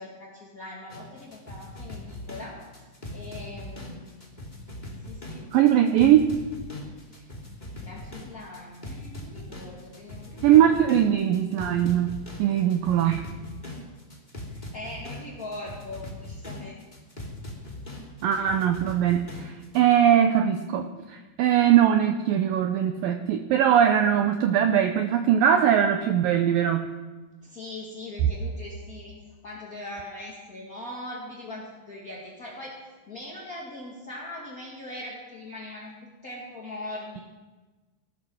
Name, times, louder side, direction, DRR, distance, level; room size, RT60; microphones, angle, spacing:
voice 1, 0.0-2.6 3.1-4.1 5.1-5.9 7.1-7.3 7.8-10.6 14.5-16.8 27.4-29.2 29.4-35.9 36.2-37.2, left 1 dB, 35° left, -4 dB, 1.5 m, -41 dB
sound 1, 0.9-19.9, left 1 dB, 15° left, 2.0 m, -40 dB
voice 2, 5.5-6.3 10.4-12.1 12.4-13.2 18.2-26.9, right 10 dB, 85° right, 7 dB, 1.9 m, -21 dB
18.0 x 13.0 x 6.2 m, 1.2 s
omnidirectional pair, 5.0 m